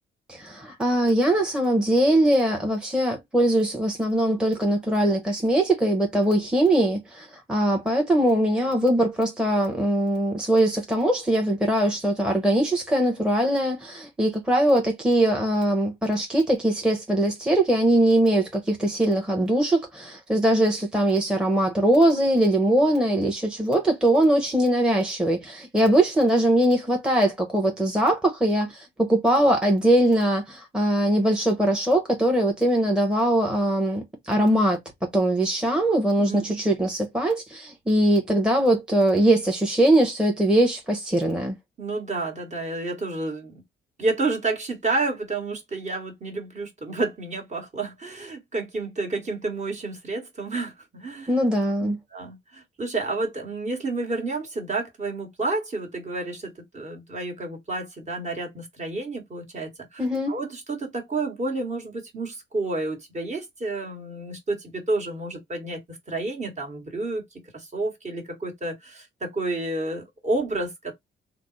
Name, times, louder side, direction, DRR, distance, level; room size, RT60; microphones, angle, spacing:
voice 1, 0.3-41.5 51.3-52.0 60.0-60.4, right 1 dB, 5° right, 0.9 m, -21 dB
voice 2, 36.2-36.6 41.8-43.6 44.0-51.3 51.8-70.9, right 2 dB, 35° right, 1.4 m, -30 dB
3.3 x 2.0 x 3.9 m
cardioid pair, 90°, 20 cm